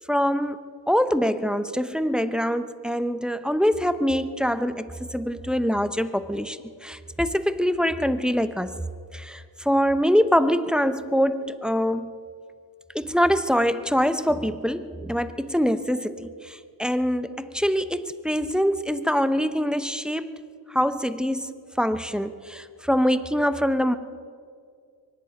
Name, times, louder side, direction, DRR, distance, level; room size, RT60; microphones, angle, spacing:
voice 1, 0.1-0.6 0.9-8.7 9.1-12.1 12.9-20.3 20.7-24.0, equal, ahead, 12 dB, 0.8 m, -24 dB
24.0 x 11.0 x 5.2 m, 2.2 s
cardioid pair, 60°, 47 cm